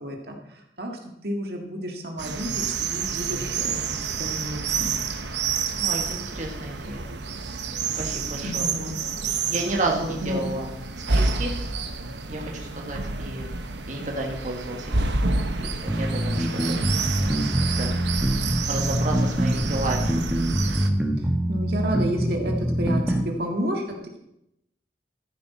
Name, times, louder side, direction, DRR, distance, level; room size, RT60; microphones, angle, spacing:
voice 1, 0.0-4.9 8.4-9.0 9.9-10.4 21.5-24.2, equal, 60° right, 2 dB, 1.8 m, -31 dB
sound 1, 2.2-20.9, right 4 dB, 85° right, 1.1 m, -29 dB
voice 2, 5.8-7.0 8.0-8.7 9.5-10.7 11.1-11.5 12.3-13.5 13.9-15.2 15.6-17.2 17.6-17.9 18.7-20.2, right 2 dB, 45° right, -1 dB, 1.8 m, -31 dB
Simple Bass, 15.9-23.3, right 1 dB, 10° right, 1.2 m, -24 dB
14.0 x 10.0 x 4.3 m, 0.82 s
head